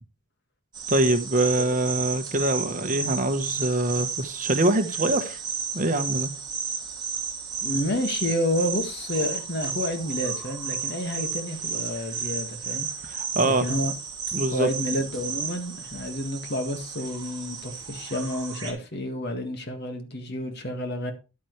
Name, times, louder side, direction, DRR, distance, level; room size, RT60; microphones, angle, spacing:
sound 1, 0.7-18.7, right 5 dB, 20° right, 2.3 m, -33 dB
voice 1, 0.9-5.4 5.7-6.3 13.0-13.7 14.3-14.7, right 1 dB, 40° right, 1.1 m, -24 dB
voice 2, 7.6-12.9 13.4-13.9 14.5-21.1, left 1 dB, 50° left, 1.8 m, -30 dB
10.5 x 9.1 x 3.2 m
head